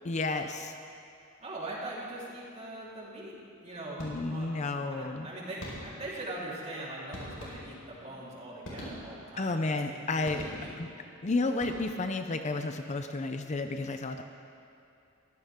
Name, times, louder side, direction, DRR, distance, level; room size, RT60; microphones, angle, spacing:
voice 1, 0.0-0.7 4.0-5.3 9.4-10.4 10.8-10.9 11.2-14.2, left 3 dB, 35° left, 7 dB, 0.6 m, -31 dB
voice 2, 1.4-3.4 3.6-10.8, right 1 dB, 35° right, -6 dB, 3.8 m, -42 dB
sound 1, 4.0-4.5 5.6-6.2 7.1-8.0 8.6-9.4 10.2-11.0 11.5-12.2, equal, 70° left, 4.7 m, -43 dB
22.5 x 15.5 x 3.7 m, 2.6 s
head